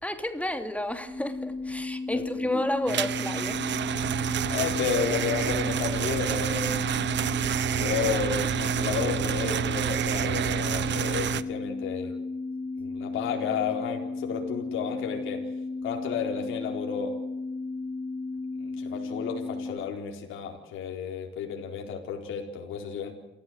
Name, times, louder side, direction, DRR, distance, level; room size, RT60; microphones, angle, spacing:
voice 1, 0.0-3.6, left 1 dB, 5° left, 2.8 m, -31 dB
sound 1, 1.0-19.7, left 3 dB, 45° right, 7.2 m, -34 dB
voice 2, 2.1-2.5 4.5-6.9 7.8-12.1 12.8-15.4 15.8-17.2 18.8-23.1, left 7 dB, 85° left, 4.2 m, -32 dB
sound 2, 2.9-11.4, right 10 dB, 65° right, 1.1 m, -28 dB
29.0 x 15.5 x 8.0 m
cardioid pair, 90°, 20 cm